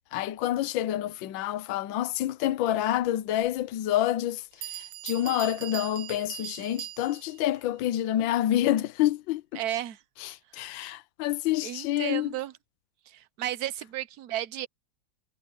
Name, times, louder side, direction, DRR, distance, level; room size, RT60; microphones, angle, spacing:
voice 1, 0.1-9.4 10.2-12.3, left 13 dB, 65° left, 1.5 m, -28 dB
Bell, 3.4-3.5 4.2-4.3 4.6-7.4, right 13 dB, 80° right, 1.6 m, -40 dB
voice 2, 9.5-10.0 10.6-10.9 11.6-12.5 13.1-14.7, right 12 dB, 60° right, 1.1 m, -34 dB
omnidirectional pair, 2.4 m